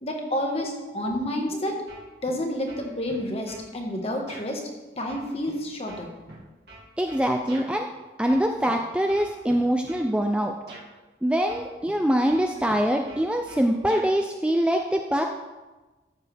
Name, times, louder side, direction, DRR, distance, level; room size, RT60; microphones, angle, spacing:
voice 1, 0.0-1.8 2.2-4.7 4.9-6.1, left 1 dB, 35° left, 1 dB, 1.4 m, -29 dB
sound 1, 1.9-2.4 2.7-3.7 4.3-4.5 5.1-7.7 8.3-8.7 9.1-10.1 10.7-10.9 11.5-12.0 12.3-14.1, right 2 dB, 60° right, 2.1 m, -45 dB
voice 2, 7.0-7.9 8.2-10.5 11.2-15.2, equal, 5° right, 3 dB, 0.4 m, -24 dB
14.0 x 7.0 x 3.4 m, 1.2 s
head